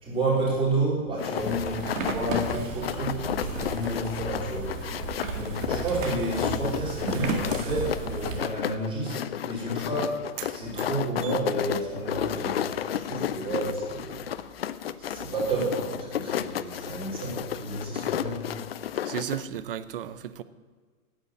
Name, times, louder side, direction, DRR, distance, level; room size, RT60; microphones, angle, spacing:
voice 1, 0.0-14.2 15.0-18.4, right 2 dB, 10° right, 3.8 m, -31 dB
sound 1, 1.2-19.5, left 10 dB, 45° left, 0.4 m, -32 dB
sound 2, 1.4-8.4, right 4 dB, 60° right, 2.1 m, -34 dB
voice 2, 19.0-20.4, right 10 dB, 40° right, 0.6 m, -34 dB
9.0 x 8.8 x 9.1 m
hypercardioid pair, 150°, 44 cm